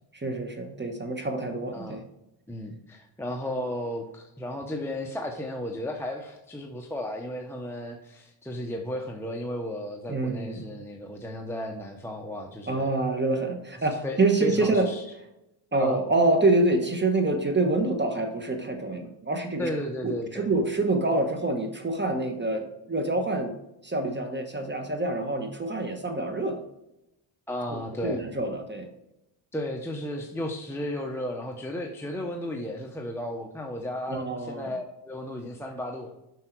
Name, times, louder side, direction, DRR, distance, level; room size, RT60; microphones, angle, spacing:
voice 1, 0.1-2.0 10.1-10.6 12.7-14.9 15.7-19.7 20.0-23.5 23.8-26.6 27.7-28.9 34.1-34.7, right 2 dB, 20° right, 5 dB, 1.1 m, -26 dB
voice 2, 1.7-2.0 2.5-12.9 14.0-15.0 15.8-16.0 19.6-20.5 27.5-28.3 29.5-36.1, left 1 dB, 5° left, 1 dB, 0.8 m, -34 dB
7.9 x 5.6 x 4.5 m, 0.88 s
cardioid pair, 115°, 50 cm